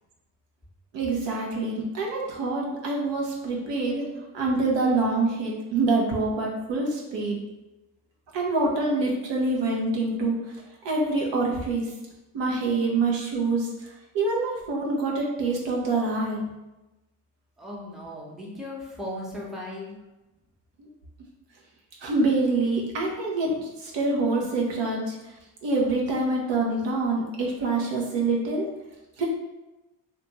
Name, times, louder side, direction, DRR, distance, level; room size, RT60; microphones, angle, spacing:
voice 1, 0.9-4.1 4.3-7.4 8.3-10.4 10.8-11.9 12.3-13.9 14.1-16.4 22.0-25.2 25.6-28.7 29.2-29.3, right 3 dB, 60° right, -2 dB, 0.7 m, -26 dB
voice 2, 17.6-20.0, left 1 dB, ahead, -4 dB, 0.8 m, -37 dB
2.5 x 2.3 x 3.0 m, 1.0 s
hypercardioid pair, 40°, 49 cm